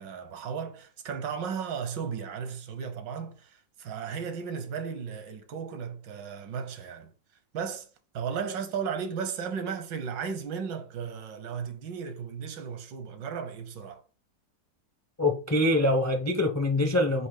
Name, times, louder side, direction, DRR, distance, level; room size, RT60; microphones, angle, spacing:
voice 1, 0.0-7.1 7.5-7.9 8.1-14.0, right 6 dB, 80° right, 1.6 m, -35 dB
voice 2, 15.2-17.3, left 1 dB, 25° left, 0.3 m, -24 dB
8.5 x 2.9 x 3.9 m
omnidirectional pair, 2.0 m